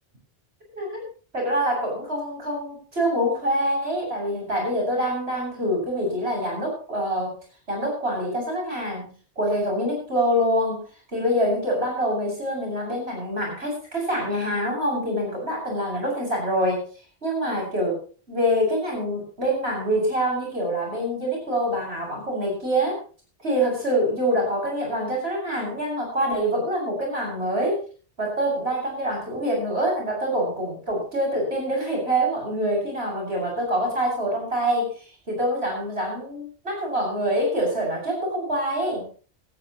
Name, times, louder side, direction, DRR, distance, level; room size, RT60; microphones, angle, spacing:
voice 1, 0.7-1.0 1.3-7.4 7.7-9.0 9.4-10.8 11.1-16.8 17.2-18.0 18.3-23.0 23.4-27.8 28.2-34.9 35.3-39.0, equal, 75° right, -1 dB, 7.6 m, -25 dB
16.5 x 16.0 x 3.1 m, 0.38 s
omnidirectional pair, 1.1 m